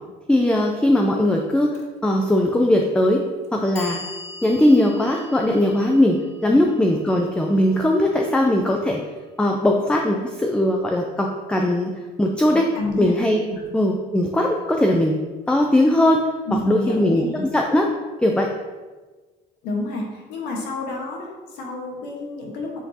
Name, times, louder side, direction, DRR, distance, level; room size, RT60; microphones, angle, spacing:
voice 1, 0.3-1.7 2.0-3.2 3.5-4.0 4.4-9.0 9.4-11.9 12.2-12.7 13.0-13.4 13.7-15.2 15.5-16.2 16.7-17.2 17.5-17.9 18.2-18.5, left 1 dB, 5° left, 1 dB, 0.5 m, -19 dB
Clock, 1.7-1.9 2.8-2.9 3.4-9.5, left 2 dB, 40° left, 1.1 m, -42 dB
voice 2, 12.5-13.1 13.5-13.6 16.5-17.4 19.6-22.8, left 2 dB, 90° left, 0 dB, 1.4 m, -29 dB
8.0 x 4.3 x 2.9 m, 1.3 s
cardioid pair, 110°, 17 cm